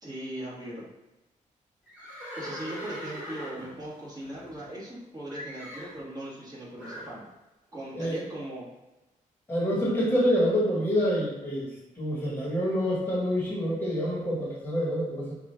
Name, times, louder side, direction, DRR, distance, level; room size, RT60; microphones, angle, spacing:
voice 1, 0.0-0.8 2.4-7.2 7.7-8.7, right 1 dB, 30° right, -7 dB, 1.5 m, -39 dB
Livestock farm animals working animals, 1.9-5.0 5.3-6.0 6.8-7.2, equal, 10° right, 1.4 m, -41 dB
voice 2, 9.5-11.7 12.0-15.3, equal, 15° left, -6 dB, 1.2 m, -27 dB
5.2 x 2.4 x 3.3 m, 1.0 s
wide cardioid pair, 140°, 14 cm